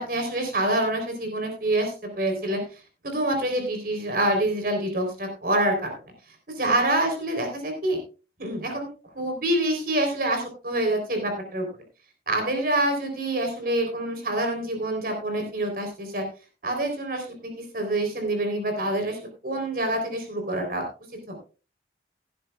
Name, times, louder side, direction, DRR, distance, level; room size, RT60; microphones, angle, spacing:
voice 1, 0.0-2.6 3.0-6.0 6.5-8.0 8.4-8.9 9.1-11.7 12.3-16.2 16.6-19.2 19.4-20.9 21.3-21.4, right 1 dB, 50° right, 4 dB, 3.7 m, -26 dB
16.5 x 11.0 x 2.4 m, 0.34 s
head